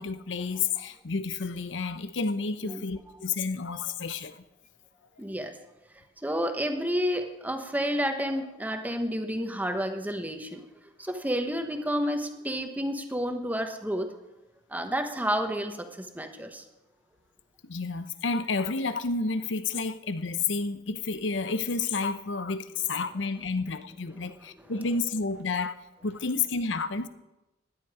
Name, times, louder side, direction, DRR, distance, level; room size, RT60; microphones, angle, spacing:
voice 1, 0.0-4.4 17.6-25.8 26.0-27.1, left 4 dB, 90° left, 0.8 m, -30 dB
voice 2, 5.2-5.5 6.0-10.6 11.0-14.2 14.7-16.6, equal, 10° right, 1.2 m, -30 dB
17.5 x 11.0 x 5.0 m
head